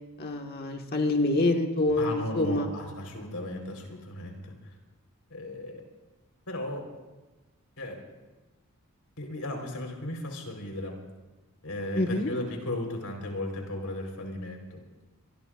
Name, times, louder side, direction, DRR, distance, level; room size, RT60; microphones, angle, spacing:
voice 1, 0.2-2.7 11.9-12.3, left 2 dB, 45° left, 2 dB, 1.6 m, -26 dB
voice 2, 2.0-4.5 5.3-5.8 6.5-6.8 7.8-8.0 9.2-11.0 11.6-14.8, left 1 dB, 85° left, 2 dB, 4.2 m, -35 dB
25.5 x 22.0 x 2.5 m, 1.2 s
head